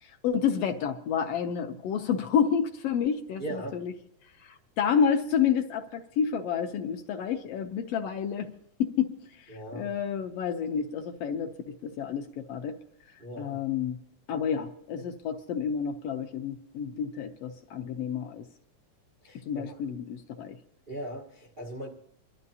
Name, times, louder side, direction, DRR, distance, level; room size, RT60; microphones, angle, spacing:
voice 1, 0.0-3.9 4.4-8.5 8.8-12.8 13.4-14.0 14.3-18.4 19.5-20.6, left 7 dB, 75° left, 1.6 m, -29 dB
voice 2, 3.4-3.8 9.5-9.9 13.2-13.6 19.2-19.8 20.9-21.9, right 1 dB, 75° right, 0.4 m, -39 dB
26.5 x 12.5 x 2.7 m
omnidirectional pair, 3.3 m